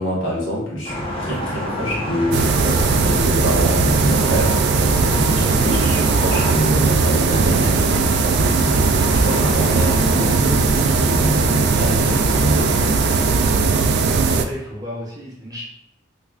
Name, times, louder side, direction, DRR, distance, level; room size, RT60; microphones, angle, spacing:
voice 1, 0.0-7.9 8.8-12.7, equal, 70° left, -5 dB, 1.2 m, -25 dB
sound 1, 0.8-13.6, left 1 dB, 30° left, 0.8 m, -28 dB
sound 2, 2.3-14.4, right 4 dB, 60° right, 0.3 m, -18 dB
voice 2, 13.7-15.6, left 1 dB, 20° right, -6 dB, 0.9 m, -33 dB
3.6 x 3.1 x 2.4 m, 0.74 s
head